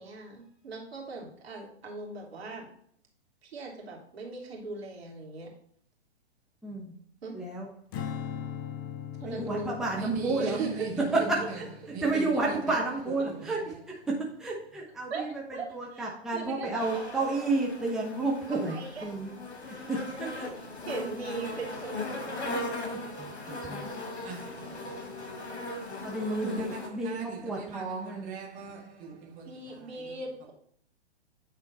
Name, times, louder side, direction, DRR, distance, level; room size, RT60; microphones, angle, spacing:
voice 1, 0.0-2.7 3.4-5.5 7.2-7.4 9.2-9.8 10.4-10.9 11.2-11.5 15.1-17.6 18.5-19.1 20.2-22.4 24.3-24.4 29.4-30.5, right 3 dB, 65° right, 2.8 m, -39 dB
voice 2, 6.6-6.9 7.3-7.7 9.2-10.6 11.3-11.5 12.0-13.6 14.2-15.3 15.7-19.3 19.7-20.3 22.5-22.6 23.2-23.9 26.0-28.4, right 2 dB, ahead, 0.9 m, -31 dB
Strum, 7.9-14.3, left 8 dB, 20° left, 0.4 m, -41 dB
voice 3, 9.9-11.3 11.9-12.6 13.3-13.6 24.2-24.7 26.4-29.5 29.9-30.1, right 6 dB, 25° right, 1.5 m, -39 dB
sound 1, 16.8-26.9, left 2 dB, 70° left, 2.3 m, -39 dB
9.0 x 3.7 x 4.0 m
figure-of-eight pair, 120°, 33 cm